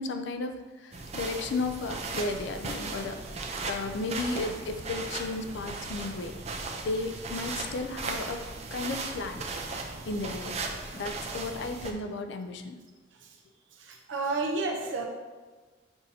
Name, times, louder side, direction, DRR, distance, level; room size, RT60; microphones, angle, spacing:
voice 1, 0.0-3.2 3.7-6.4 6.8-8.4 8.7-9.5 10.1-10.6 10.9-12.7, left 3 dB, 60° left, 7 dB, 0.4 m, -34 dB
sound 1, 0.9-11.9, right 3 dB, 35° right, 0.4 m, -37 dB
voice 2, 13.1-13.4 13.7-15.0, right 3 dB, 70° right, 1 dB, 0.7 m, -33 dB
6.8 x 2.7 x 2.7 m, 1.4 s
head